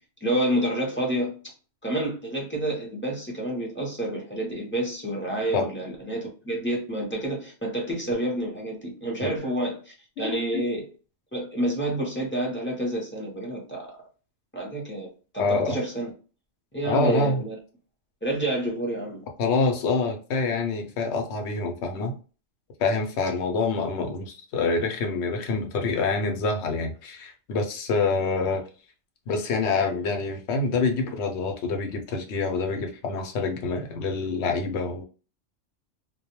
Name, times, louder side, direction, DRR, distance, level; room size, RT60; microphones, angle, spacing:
voice 1, 0.2-1.3 1.8-10.9 11.3-13.9 14.5-15.1 15.3-16.1 16.7-17.5 18.2-19.2, right 1 dB, 15° left, 0.5 m, -29 dB
voice 2, 15.4-15.8 16.8-17.4 19.4-22.1 22.8-28.6 29.3-35.0, left 4 dB, 65° left, 0.9 m, -26 dB
2.2 x 2.1 x 2.9 m
omnidirectional pair, 1.3 m